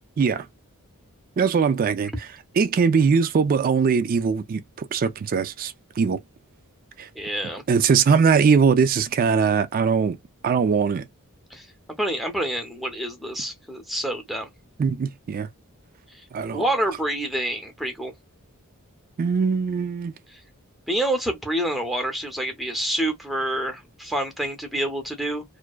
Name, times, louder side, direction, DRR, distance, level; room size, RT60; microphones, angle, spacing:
voice 1, 1.4-2.3 2.6-6.2 7.0-7.1 7.7-10.2 10.4-11.1 14.8-15.5 16.3-16.6 19.2-20.1, right 5 dB, 40° right, 0.3 m, -21 dB
voice 2, 7.1-7.6 11.5-11.7 12.0-14.5 16.1-16.2 16.5-18.1 20.3-20.4 20.9-25.4, right 1 dB, ahead, 0.6 m, -27 dB
2.5 x 2.2 x 2.2 m
head